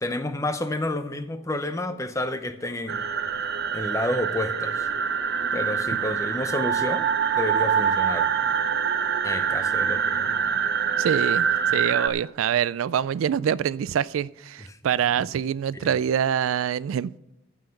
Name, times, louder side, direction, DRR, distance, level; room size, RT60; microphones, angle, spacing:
voice 1, 0.0-3.0 3.7-4.9 5.5-7.1 7.3-8.3 9.2-10.4 14.7-14.8 15.8-15.9, left 1 dB, 15° left, 0.7 m, -30 dB
sound 1, 2.9-12.1, right 7 dB, 50° right, 0.7 m, -25 dB
voice 2, 11.0-11.5 11.7-17.2, right 8 dB, 70° right, 0.3 m, -25 dB
15.0 x 5.8 x 6.4 m
head